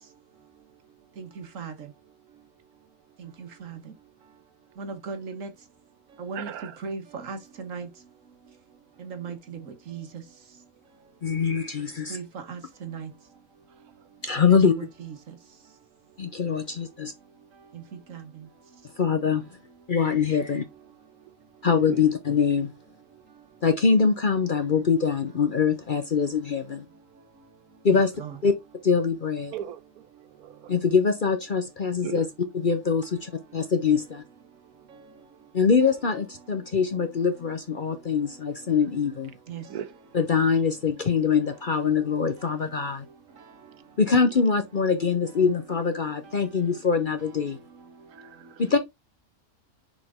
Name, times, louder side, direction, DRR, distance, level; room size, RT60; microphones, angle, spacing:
voice 1, 1.2-1.7 3.2-3.8 4.8-5.5 6.2-6.5 6.8-7.9 9.0-10.1 12.1-13.1 14.4-15.2 17.7-17.8 18.1-18.4 27.9-28.4 39.5-39.6, right 5 dB, 60° right, 1.7 m, -37 dB
voice 2, 6.3-6.8 19.2-19.3 21.8-22.1 29.5-30.1 30.4-30.7 32.0-32.2 39.7-39.9 48.1-48.6, right 10 dB, 90° right, 1.3 m, -37 dB
voice 3, 11.2-12.2 14.2-14.7 16.2-17.1 19.0-19.5 19.9-20.7 21.6-22.7 23.6-26.8 27.8-28.1 28.4-28.5 28.8-29.5 30.7-32.3 32.6-34.2 35.5-39.3 40.1-43.0 44.0-47.6 48.6-48.8, left 5 dB, 45° left, 0.7 m, -23 dB
6.3 x 4.9 x 3.6 m
omnidirectional pair, 1.5 m